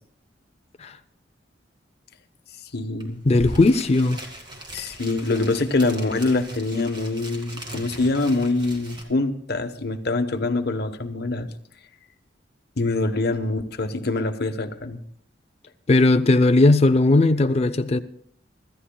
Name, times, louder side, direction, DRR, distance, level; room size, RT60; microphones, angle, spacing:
voice 1, 2.7-3.2 4.7-11.5 12.8-15.0, left 2 dB, 65° left, 1.1 m, -24 dB
sound 1, 3.0-3.1 3.3-9.0, right 1 dB, 25° right, 2.4 m, -39 dB
voice 2, 3.2-4.2 15.9-18.0, left 2 dB, 35° left, 0.5 m, -17 dB
25.5 x 14.0 x 2.3 m
head